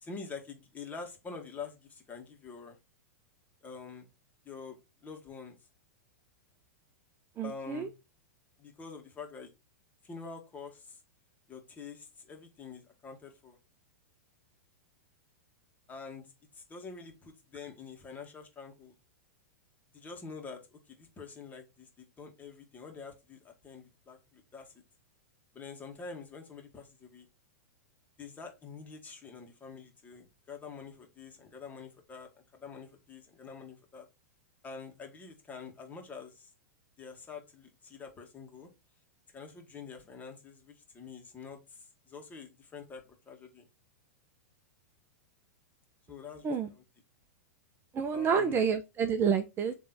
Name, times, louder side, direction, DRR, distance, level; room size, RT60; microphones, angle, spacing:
voice 1, 0.0-2.8 3.6-4.1 4.5-5.6 7.4-7.9 8.6-9.5 10.0-11.0 11.5-13.6 15.9-16.2 16.5-18.9 19.9-24.7 25.5-27.3 28.2-34.1 34.6-36.5 37.0-38.7 39.3-43.6 46.1-46.8 48.1-48.6, left 5 dB, 20° left, 2.0 m, -46 dB
voice 2, 7.4-7.9 46.4-46.7 47.9-49.7, right 6 dB, 25° right, 0.8 m, -29 dB
7.5 x 3.4 x 4.2 m
hypercardioid pair, 120°, 8 cm